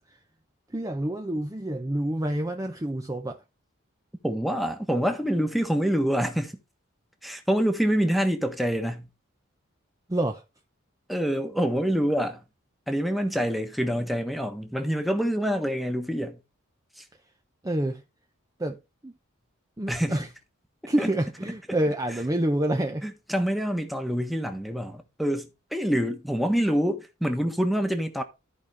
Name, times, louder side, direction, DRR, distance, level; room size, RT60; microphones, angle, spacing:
voice 1, 0.7-3.4 10.1-10.4 17.6-18.0 18.6-19.1 19.8-20.3 20.9-23.1, right 1 dB, 15° right, 0.6 m, -28 dB
voice 2, 4.2-6.6 7.2-9.1 11.1-12.4 12.9-16.4 17.0-17.1 19.9-20.3 21.0-21.1 23.0-28.2, equal, ahead, 1.2 m, -26 dB
13.5 x 5.0 x 3.4 m
head